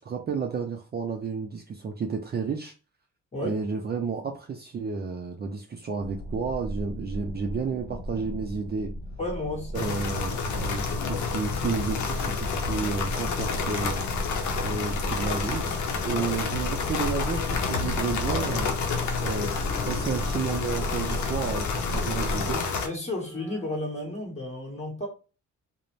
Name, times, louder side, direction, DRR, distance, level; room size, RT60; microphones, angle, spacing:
voice 1, 0.0-2.7 3.4-8.9 9.7-14.0 14.5-15.6 16.0-18.7 19.2-22.6, right 5 dB, 35° right, 0.4 m, -31 dB
sound 1, 6.0-22.5, equal, 55° left, 1.0 m, -36 dB
voice 2, 9.2-10.0 16.1-16.3 22.8-25.1, left 1 dB, 20° left, 1.3 m, -33 dB
sound 2, 9.7-22.9, left 5 dB, 75° left, 0.7 m, -29 dB
Wind instrument woodwind instrument, 16.6-24.0, left 1 dB, 5° left, 0.8 m, -47 dB
2.5 x 2.1 x 3.1 m
cardioid pair, 90°, 30 cm